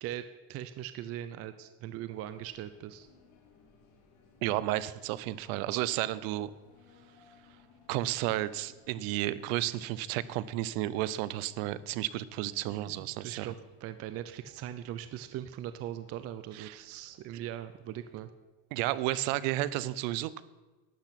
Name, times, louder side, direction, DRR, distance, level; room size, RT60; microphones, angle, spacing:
voice 1, 0.0-3.1 12.6-13.6 13.8-18.3, right 11 dB, 35° right, 11 dB, 0.5 m, -40 dB
sound 1, 2.1-18.2, left 5 dB, 65° left, 3.4 m, -63 dB
voice 2, 4.4-6.5 7.9-13.5 16.5-16.8 18.7-20.4, right 15 dB, 80° right, 17 dB, 0.7 m, -32 dB
12.0 x 8.8 x 5.8 m, 1.2 s
cardioid pair, 145°, 41 cm